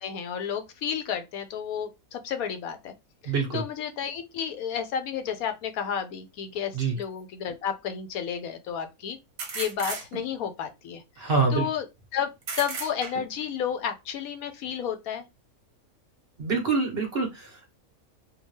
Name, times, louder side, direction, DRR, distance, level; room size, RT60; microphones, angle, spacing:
voice 1, 0.0-2.9 3.2-9.2 9.5-11.8 12.1-12.3 12.6-15.2, left 8 dB, 80° left, 1.1 m, -32 dB
voice 2, 3.2-3.6 6.7-7.0 11.2-11.7 16.4-17.7, right 4 dB, 45° right, 1.2 m, -26 dB
sound 1, 7.0-7.1 9.4-10.5 12.4-13.5, right 4 dB, 75° right, 1.4 m, -35 dB
3.6 x 2.3 x 3.1 m
omnidirectional pair, 1.5 m